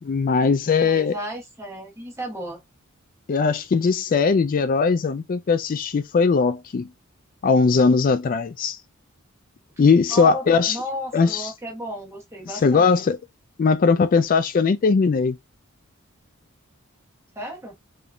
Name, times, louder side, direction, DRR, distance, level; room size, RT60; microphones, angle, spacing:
voice 1, 0.0-1.1 3.3-6.9 7.4-8.8 9.8-10.8 11.1-11.5 12.5-13.2 13.6-15.4, left 5 dB, 40° left, 0.3 m, -19 dB
voice 2, 0.8-2.6 10.1-13.1 17.3-17.7, equal, 15° right, 1.1 m, -34 dB
3.8 x 3.7 x 2.2 m
head